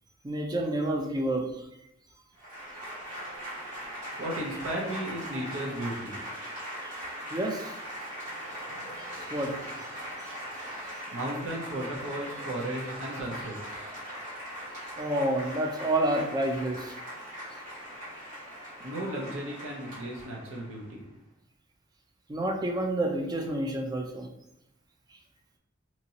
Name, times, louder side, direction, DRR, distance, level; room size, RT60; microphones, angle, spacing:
voice 1, 0.2-1.6 6.8-6.9 7.3-7.8 9.3-9.5 15.0-16.9 22.3-24.3, right 1 dB, 20° right, 2 dB, 0.4 m, -29 dB
Applause / Crowd, 2.3-20.9, equal, 40° right, 1.4 m, -40 dB
voice 2, 4.2-6.2 11.1-13.9 18.8-21.0, right 1 dB, 85° right, -2 dB, 0.7 m, -35 dB
2.9 x 2.7 x 2.7 m, 0.86 s
head